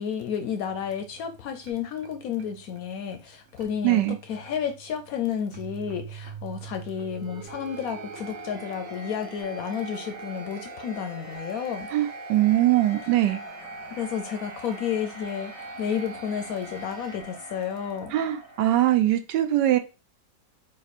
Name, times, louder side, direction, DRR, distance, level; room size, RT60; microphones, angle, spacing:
voice 1, 0.0-11.9 14.0-18.1, left 8 dB, 70° left, 0.9 m, -31 dB
sound 1, 0.7-18.7, right 3 dB, 55° right, 1.2 m, -42 dB
voice 2, 3.8-4.2 11.9-13.4 18.1-19.8, right 14 dB, 80° right, 1.2 m, -22 dB
4.3 x 2.5 x 4.1 m
omnidirectional pair, 1.9 m